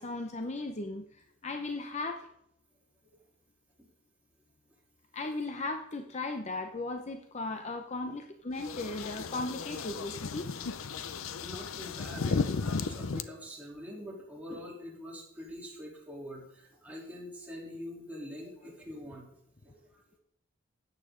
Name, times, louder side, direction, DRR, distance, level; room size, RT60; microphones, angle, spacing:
voice 1, 0.0-2.3 5.1-10.5, left 2 dB, 35° left, 5 dB, 0.6 m, -37 dB
sound 1, 8.6-13.2, left 4 dB, 75° left, 0.6 m, -34 dB
voice 2, 10.9-20.0, left 1 dB, 10° right, -4 dB, 3.2 m, -45 dB
13.5 x 9.0 x 3.8 m, 0.73 s
head